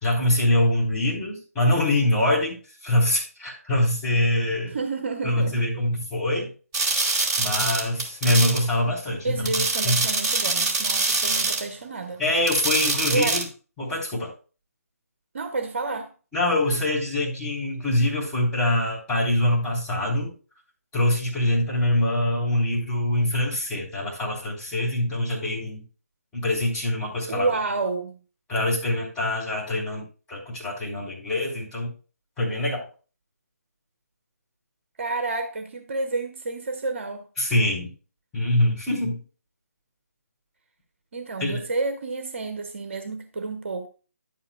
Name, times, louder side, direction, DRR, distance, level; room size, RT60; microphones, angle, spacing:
voice 1, 0.0-2.6 2.8-4.8 5.2-6.5 7.4-9.5 9.8-9.9 12.2-13.4 13.8-14.3 16.3-20.3 20.9-25.8 26.3-27.5 28.5-31.9 32.4-32.8 37.4-37.9 38.3-39.2 41.4-41.6, left 1 dB, 10° left, 3.6 m, -24 dB
voice 2, 4.7-5.7 9.2-12.2 13.1-13.4 15.3-16.1 27.3-28.2 35.0-37.3 41.1-43.9, right 3 dB, 45° right, 1.1 m, -29 dB
sound 1, 6.7-8.6 9.5-11.7 12.5-13.4, right 3 dB, 20° right, 1.8 m, -24 dB
11.0 x 8.7 x 2.2 m
figure-of-eight pair, 150°, 9 cm